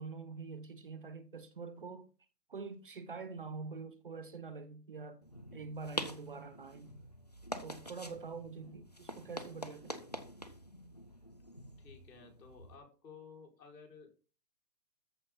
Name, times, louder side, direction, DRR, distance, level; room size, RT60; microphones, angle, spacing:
voice 1, 0.0-2.1 2.5-5.2 5.5-6.9 7.6-10.2, right 4 dB, 35° right, 0.6 m, -45 dB
sound 1, 5.2-12.8, equal, 25° left, 0.4 m, -46 dB
voice 2, 11.8-14.1, left 5 dB, 75° left, 4.9 m, -55 dB
13.5 x 8.0 x 3.7 m
hypercardioid pair, 165°, 49 cm